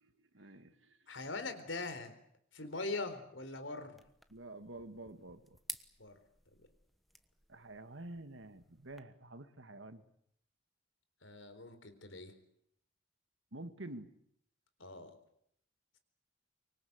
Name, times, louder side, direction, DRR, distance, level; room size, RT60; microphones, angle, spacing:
voice 1, 0.0-1.0 4.3-5.6 7.5-10.0 13.5-14.1, right 2 dB, 80° right, 10 dB, 1.9 m, -49 dB
voice 2, 1.1-2.1 2.5-4.0 6.0-6.2 6.6-6.7 11.2-12.3 14.8-15.2, left 3 dB, 90° left, 9 dB, 4.0 m, -42 dB
sound 1, 4.0-9.0, equal, ahead, 1.2 m, -53 dB
24.5 x 24.0 x 8.2 m, 0.72 s
head